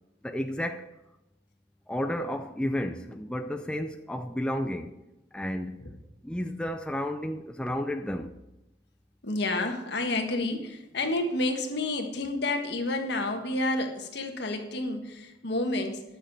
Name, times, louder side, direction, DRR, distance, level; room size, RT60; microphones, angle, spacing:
voice 1, 0.2-0.9 1.9-4.9 5.3-5.9 6.2-8.3, equal, 5° left, 0.4 m, -32 dB
voice 2, 9.2-16.0, left 2 dB, 65° left, 1.5 m, -30 dB
10.5 x 6.6 x 6.8 m
head